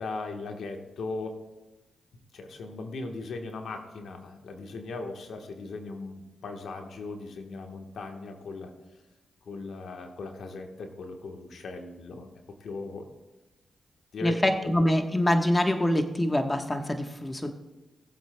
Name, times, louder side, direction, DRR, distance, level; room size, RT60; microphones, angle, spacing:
voice 1, 0.0-1.4 2.3-8.7 9.4-12.3 12.6-13.1 14.1-14.5, left 3 dB, 75° left, 4 dB, 1.2 m, -38 dB
voice 2, 14.2-17.5, left 1 dB, 20° left, 5 dB, 1.1 m, -25 dB
19.0 x 7.7 x 2.2 m, 1.1 s
supercardioid pair, 45°, 0 cm